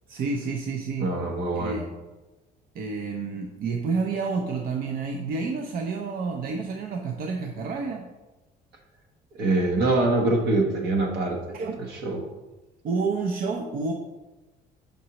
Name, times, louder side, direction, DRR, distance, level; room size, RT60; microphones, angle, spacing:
voice 1, 0.1-1.1 1.5-1.8 2.7-8.1 11.5-11.9 12.8-13.9, right 4 dB, 60° right, 3 dB, 0.6 m, -29 dB
voice 2, 1.0-1.8 9.3-11.4 12.0-12.2, right 2 dB, 75° right, 2 dB, 1.2 m, -24 dB
6.4 x 5.3 x 2.9 m, 1.1 s
cardioid pair, 110°, 17 cm